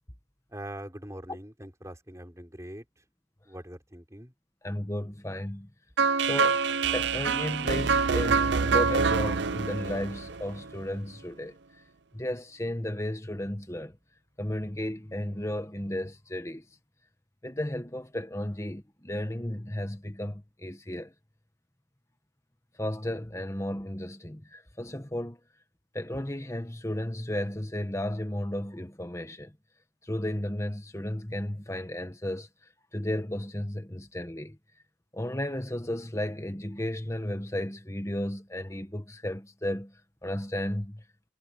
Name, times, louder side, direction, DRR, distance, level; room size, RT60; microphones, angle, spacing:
voice 1, 0.5-2.8 3.4-4.3, right 1 dB, 15° right, 4.7 m, -42 dB
voice 2, 4.6-5.7 6.2-6.6 6.9-11.5 12.1-13.9 14.4-16.6 17.4-21.1 22.8-25.4 25.9-29.5 30.1-32.5 32.9-34.6 35.1-39.9 40.2-41.0, left 1 dB, 15° left, 1.5 m, -34 dB
sound 1, 6.0-11.0, right 5 dB, 60° right, 0.6 m, -26 dB
head